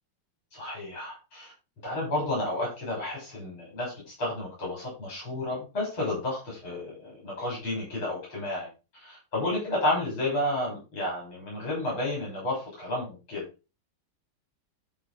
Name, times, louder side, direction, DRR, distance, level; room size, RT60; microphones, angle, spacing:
voice 1, 0.5-1.5 1.8-8.7 8.9-13.4, left 1 dB, 75° left, -4 dB, 7.4 m, -31 dB
13.5 x 5.0 x 4.9 m, 0.30 s
omnidirectional pair, 2.3 m